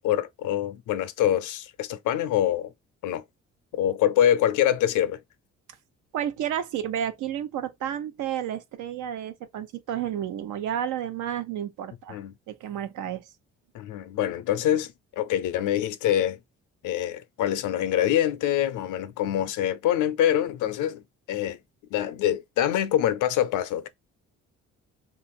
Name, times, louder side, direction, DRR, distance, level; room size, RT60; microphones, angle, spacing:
voice 1, 0.0-2.7 3.0-3.2 3.7-5.2 12.1-12.3 13.7-16.4 16.8-21.0 21.3-21.6 21.9-23.9, left 11 dB, 85° left, 0.5 m, -25 dB
voice 2, 6.1-12.2 12.5-13.3, right 10 dB, 85° right, 0.7 m, -31 dB
3.0 x 2.5 x 4.1 m
cardioid pair, 90°, 30 cm